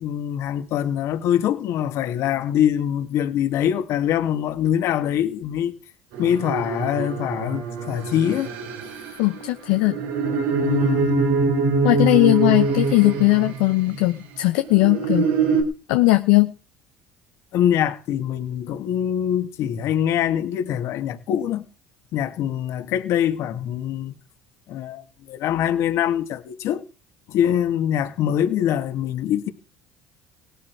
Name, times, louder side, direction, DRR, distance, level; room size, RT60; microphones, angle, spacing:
voice 1, 0.0-5.7 6.2-8.5 10.6-11.2 17.5-21.6 22.1-24.1 24.7-25.0 25.3-26.8 27.3-29.5, left 10 dB, 65° left, 2.3 m, -23 dB
sound 1, 6.1-14.0 14.6-15.6, right 4 dB, 85° right, 4.0 m, -24 dB
voice 2, 9.2-10.0 11.8-15.3 15.9-16.5, left 19 dB, 80° left, 0.9 m, -18 dB
17.5 x 12.5 x 4.8 m
supercardioid pair, 80°, 5 cm